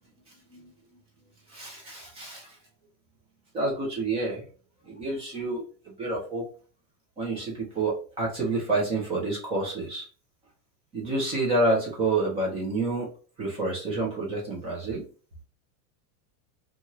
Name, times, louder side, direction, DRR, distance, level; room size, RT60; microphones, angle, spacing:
voice 1, 1.5-2.5 3.5-4.5 4.8-6.5 7.2-10.0 10.9-13.1 13.4-15.1, right 2 dB, 15° right, -3 dB, 0.4 m, -28 dB
2.6 x 2.3 x 2.9 m, 0.39 s
supercardioid pair, 165°, 46 cm